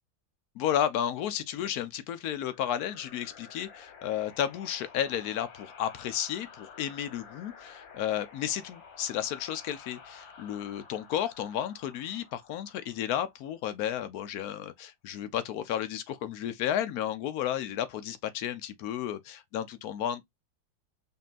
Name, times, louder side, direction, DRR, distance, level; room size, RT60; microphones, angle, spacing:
voice 1, 0.6-20.2, left 10 dB, 70° left, 0.9 m, -32 dB
sound 1, 2.4-13.8, left 5 dB, 85° left, 1.8 m, -52 dB
5.3 x 2.6 x 2.4 m
omnidirectional pair, 2.0 m